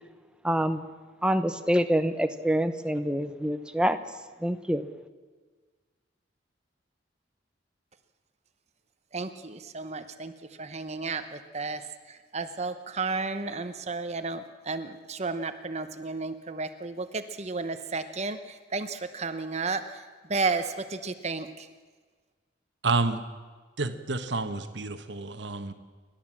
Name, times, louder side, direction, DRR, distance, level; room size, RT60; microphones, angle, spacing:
voice 1, 0.4-0.8 1.2-4.0 4.4-4.8, equal, 5° right, 9 dB, 0.8 m, -26 dB
voice 2, 9.1-10.3 10.6-11.2 11.5-11.8 12.3-18.4 18.7-19.8 20.3-20.6 20.9-21.5, right 4 dB, 35° right, 10 dB, 0.9 m, -32 dB
voice 3, 22.8-23.2 23.8-25.7, right 3 dB, 65° right, 9 dB, 1.3 m, -29 dB
30.0 x 12.0 x 7.5 m, 1.4 s
head